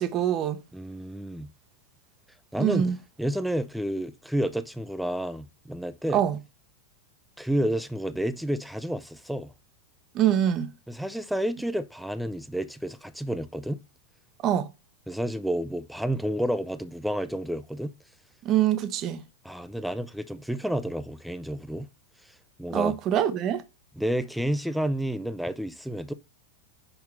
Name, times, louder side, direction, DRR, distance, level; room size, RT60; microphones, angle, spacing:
voice 1, 0.0-0.6 2.6-3.0 6.1-6.4 10.1-10.7 14.4-14.7 18.4-19.2 22.7-23.6, right 10 dB, 35° right, 0.8 m, -24 dB
voice 2, 0.7-1.5 2.5-2.9 3.2-6.2 7.4-9.5 10.9-13.8 15.1-17.9 19.4-21.9 22.6-23.0 24.0-26.1, right 1 dB, ahead, 0.5 m, -30 dB
5.7 x 5.6 x 4.3 m
figure-of-eight pair, 90°, 0 cm